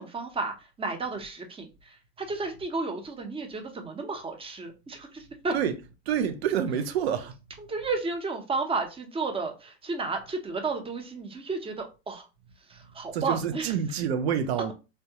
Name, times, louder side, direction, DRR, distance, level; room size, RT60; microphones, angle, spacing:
voice 1, 0.0-1.7 2.2-5.6 7.6-12.2 12.7-13.7, right 3 dB, 15° right, 0.7 m, -32 dB
voice 2, 5.5-7.3 13.1-14.7, right 8 dB, 70° right, 0.6 m, -28 dB
3.4 x 2.2 x 2.7 m
figure-of-eight pair, 75°, 33 cm